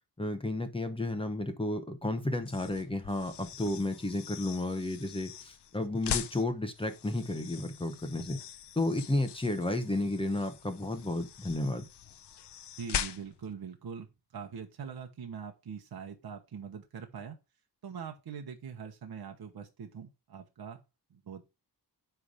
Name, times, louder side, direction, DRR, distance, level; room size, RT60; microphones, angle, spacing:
voice 1, 0.2-8.4 8.7-11.9, left 2 dB, 15° left, 1.0 m, -32 dB
sound 1, 2.4-13.5, left 9 dB, 75° left, 0.7 m, -42 dB
voice 2, 12.8-17.4 17.8-20.8 21.1-21.4, right 6 dB, 60° right, 1.1 m, -43 dB
9.4 x 3.4 x 5.0 m
wide cardioid pair, 160°, 41 cm